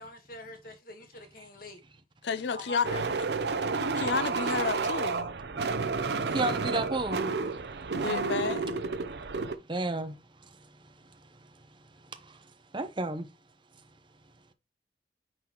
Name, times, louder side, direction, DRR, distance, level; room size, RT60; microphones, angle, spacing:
voice 1, 0.0-1.8 2.5-3.2 6.2-6.6, left 1 dB, 55° left, 1.4 m, -44 dB
voice 2, 2.2-2.9 3.8-5.3 8.0-8.7, left 5 dB, 75° left, 0.5 m, -31 dB
sound 1, 2.8-9.6, right 4 dB, 65° right, 0.6 m, -31 dB
voice 3, 6.3-7.3 9.7-10.2 10.4-10.7 12.1-12.5 12.7-13.3, right 2 dB, 25° right, 0.8 m, -32 dB
9.0 x 4.0 x 3.0 m
head